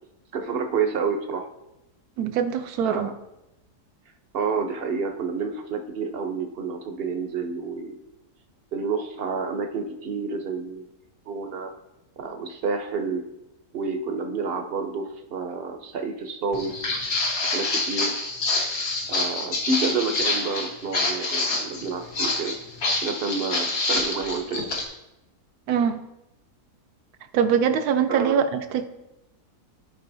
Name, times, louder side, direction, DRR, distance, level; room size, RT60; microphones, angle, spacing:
voice 1, 0.3-1.5 2.8-3.1 4.3-8.0 8.7-10.8 11.3-11.7 12.2-13.2 13.7-16.7 17.5-18.1 19.1-22.6 23.0-24.6 28.1-28.4, right 4 dB, 50° right, 5 dB, 0.8 m, -29 dB
voice 2, 2.2-3.1 25.7-26.0 27.3-28.9, right 7 dB, 75° right, 9 dB, 1.2 m, -23 dB
Walk footsteps, 16.5-24.8, left 2 dB, 65° left, 1.8 m, -27 dB
14.0 x 5.1 x 2.7 m, 0.91 s
omnidirectional pair, 1.7 m